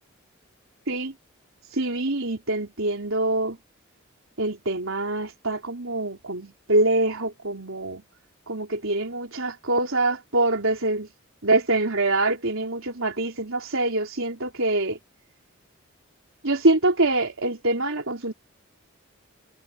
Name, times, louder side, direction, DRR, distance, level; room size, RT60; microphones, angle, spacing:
voice 1, 1.7-3.6 4.4-8.0 8.5-11.1 11.4-15.0 16.4-18.3, right 2 dB, 75° right, 3.9 m, -25 dB
head